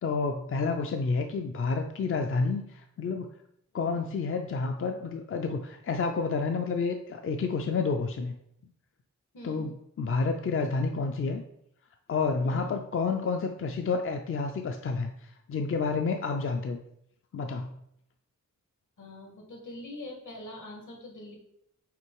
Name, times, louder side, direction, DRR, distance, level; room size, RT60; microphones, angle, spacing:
voice 1, 0.0-3.3 3.7-8.3 9.4-11.4 12.1-16.8 17.3-17.7, left 4 dB, 45° left, 5 dB, 0.4 m, -29 dB
voice 2, 9.3-9.7 12.4-12.7 19.0-21.4, left 1 dB, 75° left, 1 dB, 1.7 m, -44 dB
5.9 x 3.7 x 4.6 m, 0.74 s
wide cardioid pair, 170°, 31 cm